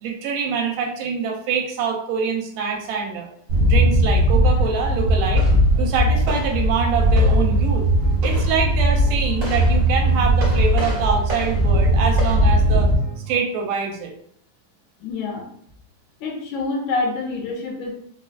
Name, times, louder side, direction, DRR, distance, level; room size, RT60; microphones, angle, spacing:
voice 1, 0.0-3.3 3.6-5.5 5.8-7.9 8.2-12.9 13.3-14.1, right 6 dB, 85° right, 1 dB, 2.3 m, -25 dB
sound 1, 3.5-12.9, equal, 60° right, 1.1 m, -19 dB
sound 2, 5.5-13.4, right 9 dB, 40° right, 0.7 m, -29 dB
voice 2, 15.0-15.5 16.2-17.9, left 3 dB, 75° left, -1 dB, 2.2 m, -26 dB
5.2 x 2.3 x 2.4 m, 0.64 s
omnidirectional pair, 3.7 m